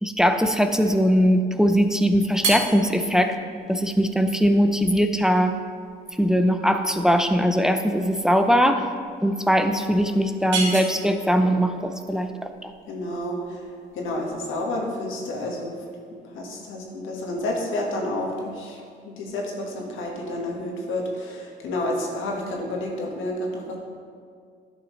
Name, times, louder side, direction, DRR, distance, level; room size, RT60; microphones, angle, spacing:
voice 1, 0.0-3.3 3.7-5.5 6.2-8.8 9.2-12.7, equal, 5° right, 6 dB, 0.5 m, -20 dB
sound 1, 2.4-14.7, right 3 dB, 75° right, 1.8 m, -35 dB
voice 2, 12.9-13.6 13.9-15.7 16.3-23.7, left 1 dB, 80° left, -1 dB, 1.5 m, -30 dB
11.0 x 6.2 x 3.2 m, 2.1 s
cardioid pair, 90°, 20 cm